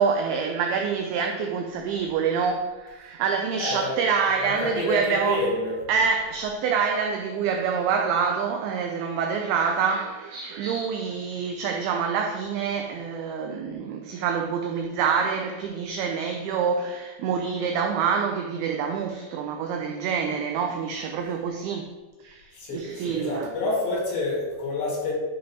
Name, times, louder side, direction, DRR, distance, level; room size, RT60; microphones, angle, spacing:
voice 1, 0.0-5.5 5.9-21.9 22.2-23.5, right 6 dB, 90° right, 2.2 m, -26 dB
voice 2, 3.6-4.0 4.4-5.8 22.5-25.1, left 2 dB, 65° left, 3.4 m, -28 dB
10.0 x 5.1 x 2.8 m
omnidirectional pair, 5.0 m